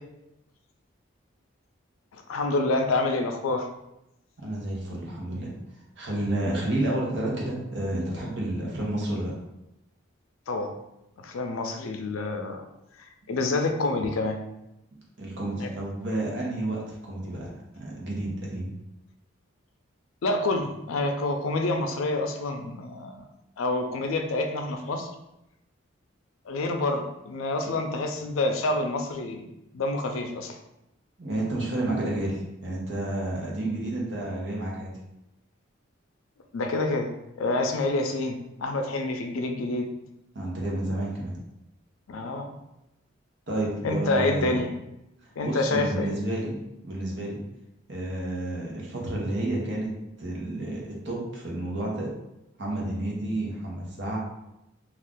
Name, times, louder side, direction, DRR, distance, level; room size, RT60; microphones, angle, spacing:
voice 1, 2.3-3.7 10.5-10.7 11.2-12.6 13.3-14.4 15.6-15.7 20.2-23.2 23.6-25.1 26.5-29.5 29.7-30.6 36.5-37.1 37.4-39.9 42.1-42.5 43.8-44.7 45.4-46.1, left 2 dB, 90° left, 4 dB, 0.4 m, -27 dB
voice 2, 4.4-5.5 6.0-9.3 15.2-16.8 17.1-17.5 17.8-18.7 27.6-27.7 31.2-34.9 40.3-41.4 43.5-44.6 45.4-46.6 46.8-47.4 47.9-49.9 50.2-52.1 52.6-54.2, right 1 dB, 60° right, -3 dB, 0.9 m, -30 dB
2.6 x 2.3 x 3.5 m, 0.88 s
head